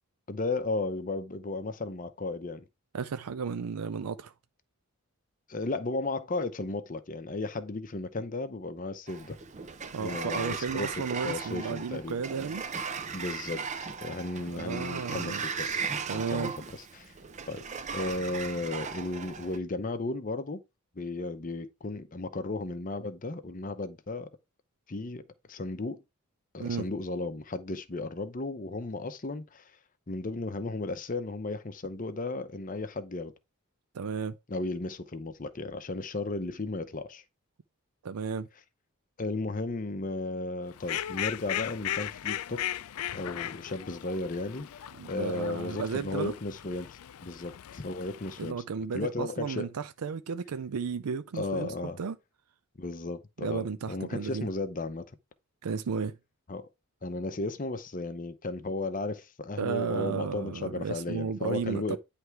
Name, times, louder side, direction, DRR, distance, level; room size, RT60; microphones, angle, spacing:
voice 1, 0.3-2.6 5.5-9.4 10.0-12.2 13.1-15.8 16.1-17.1 17.5-17.6 17.9-20.6 21.0-24.3 24.9-26.0 26.5-29.7 30.1-33.3 34.5-37.2 39.2-42.8 43.1-48.6 48.9-49.7 51.3-52.0 52.8-55.2 56.5-56.7 57.0-62.0, left 2 dB, 35° left, 0.7 m, -35 dB
voice 2, 2.9-4.3 9.9-12.6 14.5-15.4 16.1-16.5 26.6-26.8 33.9-34.4 38.0-38.5 45.0-46.3 48.4-52.2 53.4-54.5 55.6-56.2 59.6-62.0, right 6 dB, 85° right, 0.5 m, -33 dB
Sliding door, 9.1-19.6, right 5 dB, 30° right, 0.6 m, -37 dB
Fowl, 40.7-48.5, left 11 dB, 75° left, 0.4 m, -37 dB
9.6 x 3.3 x 4.6 m
head